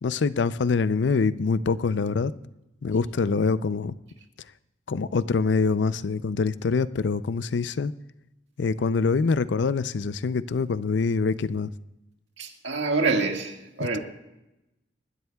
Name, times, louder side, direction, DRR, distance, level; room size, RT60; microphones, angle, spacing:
voice 1, 0.0-2.3 2.8-3.9 4.9-7.9 8.6-11.7 13.8-14.0, left 4 dB, 80° left, 0.5 m, -25 dB
voice 2, 12.4-14.0, right 3 dB, 80° right, 1.8 m, -26 dB
25.0 x 12.5 x 2.3 m
head